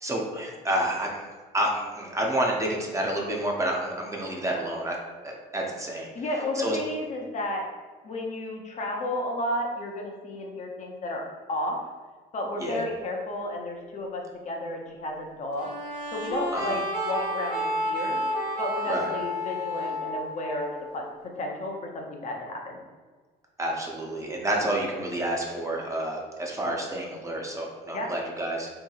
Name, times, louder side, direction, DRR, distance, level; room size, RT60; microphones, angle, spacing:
voice 1, 0.0-1.3 1.5-5.0 5.2-6.1 6.6-6.8 12.6-12.8 16.5-16.8 18.9-19.1 23.6-28.7, right 1 dB, 20° right, -1 dB, 0.5 m, -29 dB
voice 2, 6.1-7.7 8.0-11.8 12.3-15.7 16.1-18.2 18.6-22.8 27.3-27.4 27.9-28.1, left 1 dB, 45° left, 1 dB, 0.5 m, -32 dB
sound 1, 15.6-21.1, equal, 75° right, 0.9 m, -31 dB
2.8 x 2.7 x 2.3 m, 1.4 s
cardioid pair, 110°, 17 cm